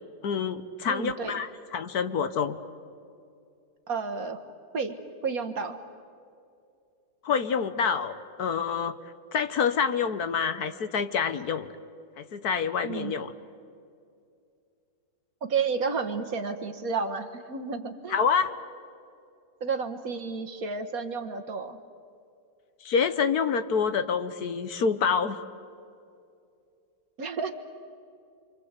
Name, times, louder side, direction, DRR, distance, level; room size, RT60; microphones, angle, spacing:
voice 1, 0.2-2.6 7.2-9.0 9.3-11.7 12.2-13.3 18.1-18.5 22.8-25.4, left 6 dB, 60° left, 11 dB, 1.4 m, -27 dB
voice 2, 0.9-1.4 3.9-5.0 5.2-5.8 12.8-13.1 15.4-18.2 19.6-21.8 27.2-27.5, right 5 dB, 50° right, 8 dB, 1.7 m, -31 dB
28.5 x 25.0 x 8.2 m, 2.5 s
omnidirectional pair, 2.1 m